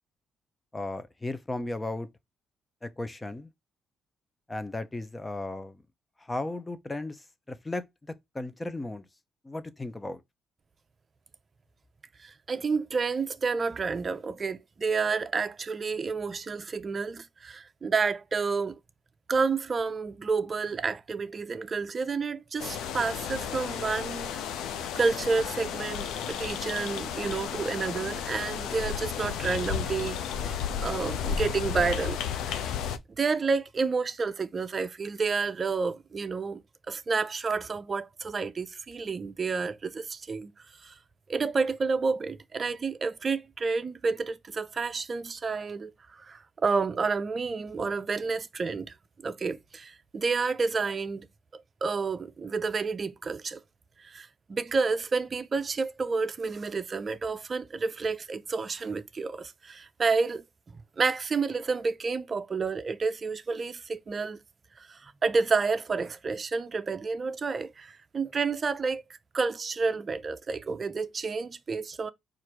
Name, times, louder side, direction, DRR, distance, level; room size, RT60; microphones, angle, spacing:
voice 1, 0.7-2.1 2.8-3.5 4.5-5.8 6.2-7.2 7.5-9.0 9.4-10.2, left 2 dB, 15° left, 0.6 m, -35 dB
voice 2, 12.2-18.8 19.3-24.4 25.0-32.7 33.2-36.6 36.9-40.5 40.8-40.9 41.3-48.9 49.2-51.3 51.5-53.6 54.0-64.4 64.8-69.0 69.3-72.1, right 4 dB, 35° right, 0.5 m, -30 dB
sound 1, 22.6-33.0, left 8 dB, 90° left, 0.4 m, -33 dB
4.5 x 2.6 x 4.5 m
cardioid pair, 90°, 0 cm